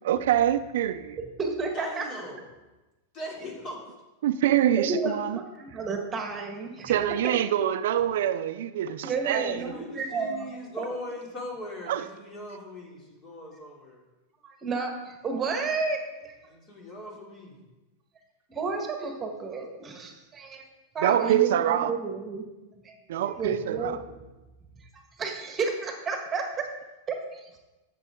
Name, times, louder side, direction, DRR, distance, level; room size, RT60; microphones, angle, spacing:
voice 1, 0.0-1.2 4.2-5.4 6.8-9.6 11.9-12.1 21.0-22.0 23.1-24.0, right 11 dB, 75° right, 0.5 m, -25 dB
voice 2, 1.2-2.0 4.8-7.0 7.2-7.4 9.0-10.9 14.4-16.3 18.5-20.6 20.9-22.4 22.8-23.0 23.4-24.0 25.2-26.6 27.1-27.5, right 4 dB, 20° right, 1.6 m, -31 dB
voice 3, 1.7-2.4 3.1-3.8 9.6-14.0 16.5-17.6, equal, 35° left, 3.0 m, -40 dB
13.0 x 6.8 x 3.8 m
supercardioid pair, 135°, 0 cm